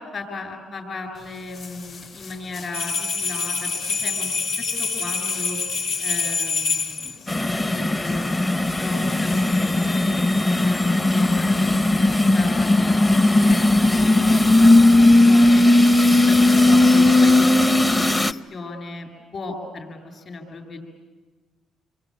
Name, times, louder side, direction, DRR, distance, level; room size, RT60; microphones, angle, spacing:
voice 1, 0.1-5.6 6.0-15.7 16.1-20.8, left 3 dB, 50° left, 5 dB, 7.1 m, -35 dB
sound 1, 1.1-9.7, left 5 dB, 65° left, 6.7 m, -45 dB
sound 2, 2.7-7.2, left 4 dB, 85° left, 2.4 m, -26 dB
sound 3, 7.3-18.3, left 2 dB, 20° left, 0.8 m, -17 dB
27.5 x 23.5 x 8.8 m, 1.3 s
cardioid pair, 90°, 0 cm